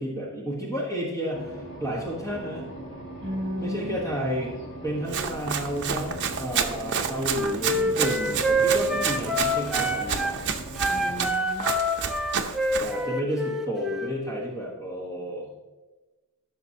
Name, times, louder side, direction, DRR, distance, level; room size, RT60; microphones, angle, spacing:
voice 1, 0.0-2.6 3.6-4.5 4.8-10.3 12.8-15.7, equal, 15° left, -4 dB, 1.3 m, -32 dB
sound 1, 1.3-11.2, right 1 dB, 60° left, 2.2 m, -40 dB
voice 2, 3.2-3.9 10.9-11.7, equal, 30° right, -1 dB, 3.0 m, -33 dB
Run, 5.1-13.0, right 7 dB, 55° right, 0.7 m, -30 dB
Wind instrument woodwind instrument, 7.3-10.4 10.7-14.2, equal, ahead, 0.8 m, -27 dB
14.0 x 6.0 x 2.8 m, 1.1 s
head